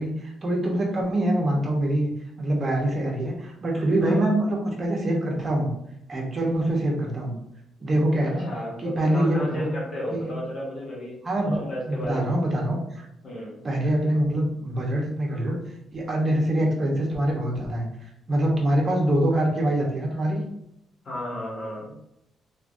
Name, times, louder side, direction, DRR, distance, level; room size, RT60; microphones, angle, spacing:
voice 1, 0.0-2.1 2.4-5.7 6.1-7.3 7.8-8.4 8.8-9.7 10.1-10.3 11.2-13.1 13.6-15.6 15.9-17.9 18.3-20.4, right 1 dB, 35° right, 0 dB, 0.9 m, -24 dB
voice 2, 8.2-11.3 11.6-12.3 13.2-13.6 21.0-21.9, left 1 dB, 60° left, -4 dB, 1.1 m, -33 dB
3.2 x 2.4 x 2.5 m, 0.80 s
cardioid pair, 90°, 0 cm